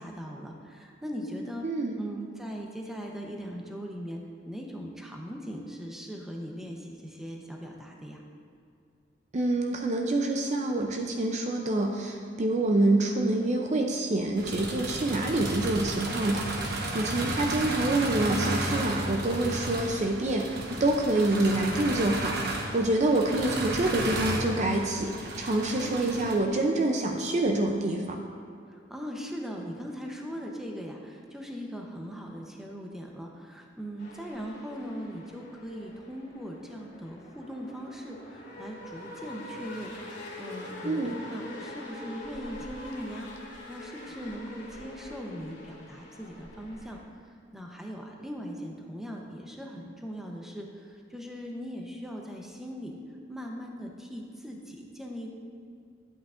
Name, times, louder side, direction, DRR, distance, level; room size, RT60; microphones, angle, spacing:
voice 1, 0.0-1.6 2.0-4.2 4.4-8.2 25.7-26.1 28.7-47.0 47.3-53.0 53.3-55.3, equal, ahead, 0 dB, 0.8 m, -40 dB
voice 2, 1.6-2.0 9.3-28.2 40.8-41.1, right 2 dB, 40° right, 3 dB, 0.5 m, -27 dB
sound 1, 14.4-26.4, right 1 dB, 55° right, 1.0 m, -33 dB
sound 2, 34.0-47.0, left 2 dB, 65° left, 2.1 m, -45 dB
10.5 x 8.6 x 2.5 m, 2.4 s
head